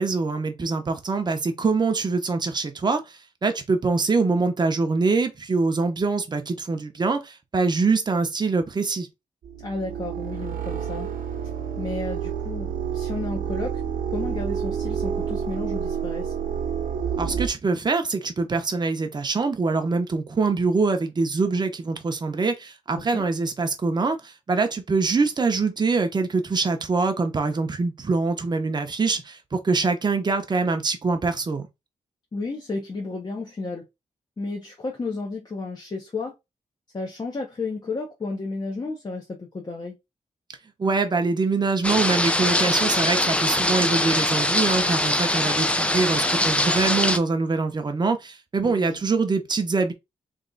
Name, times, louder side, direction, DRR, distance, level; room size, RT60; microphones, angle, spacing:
voice 1, 0.0-3.0 3.4-9.1 17.2-31.7 40.8-49.9, right 4 dB, 30° right, 0.9 m, -24 dB
sound 1, 9.4-17.5, right 8 dB, 90° right, 0.8 m, -29 dB
voice 2, 9.6-11.1 11.8-13.8 14.1-16.3 22.9-23.2 32.3-33.9 34.4-36.3 36.9-40.0 48.6-49.0, left 3 dB, 30° left, 1.0 m, -32 dB
sound 2, 41.8-47.2, left 1 dB, 10° left, 0.5 m, -22 dB
3.5 x 3.3 x 3.9 m
wide cardioid pair, 130°, 14 cm